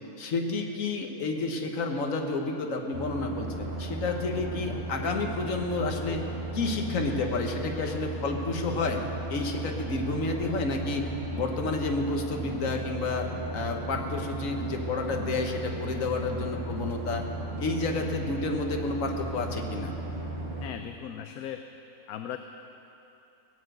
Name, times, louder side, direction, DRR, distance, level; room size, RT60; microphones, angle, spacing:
voice 1, 0.2-6.2 6.5-9.0 9.3-11.0 11.3-17.2 17.6-19.9, left 3 dB, 65° left, 3 dB, 1.6 m, -30 dB
sound 1, 2.9-20.7, right 1 dB, 30° right, 1.8 m, -35 dB
voice 2, 20.6-21.6 22.1-22.4, left 10 dB, 80° left, 7 dB, 1.1 m, -37 dB
17.0 x 8.0 x 7.9 m, 2.9 s
omnidirectional pair, 1.5 m